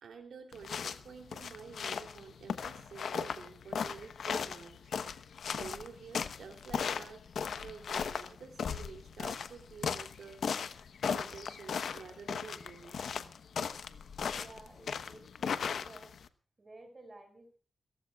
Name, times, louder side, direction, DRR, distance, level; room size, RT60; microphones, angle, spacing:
voice 1, 0.0-4.9 5.5-7.2 7.5-10.5 11.0-13.0, right 5 dB, 80° right, 4 dB, 3.0 m, -49 dB
sound 1, 0.5-16.3, left 6 dB, 80° left, 1.0 m, -37 dB
voice 2, 14.3-16.1 16.6-17.6, right 2 dB, 25° right, 5 dB, 5.3 m, -54 dB
29.5 x 15.0 x 2.4 m, 0.42 s
wide cardioid pair, 160°, 0 cm